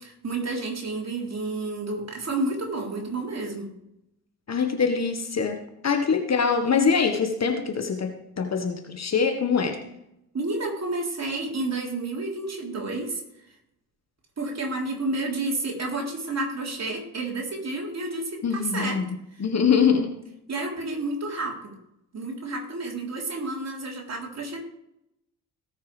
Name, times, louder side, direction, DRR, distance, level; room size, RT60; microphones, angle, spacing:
voice 1, 0.0-3.7 10.3-13.2 14.4-19.0 20.5-21.7 22.1-24.6, right 2 dB, 35° right, -1 dB, 3.9 m, -30 dB
voice 2, 4.5-9.8 18.4-20.2, left 6 dB, 35° left, 6 dB, 1.5 m, -24 dB
18.5 x 6.6 x 3.4 m, 0.82 s
figure-of-eight pair, 45°, 46 cm